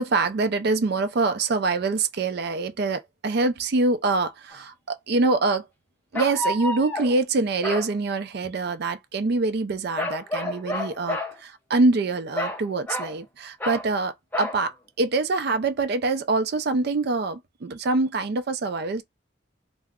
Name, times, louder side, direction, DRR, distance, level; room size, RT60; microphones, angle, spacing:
voice 1, 0.0-5.7 6.1-19.0, right 3 dB, 55° right, 0.4 m, -25 dB
sound 1, 4.5-4.6 6.2-7.2 7.6-7.9 10.0-11.3 12.4-13.2 13.6-13.9 14.3-14.6, left 1 dB, 10° left, 0.5 m, -29 dB
2.4 x 2.0 x 3.5 m
head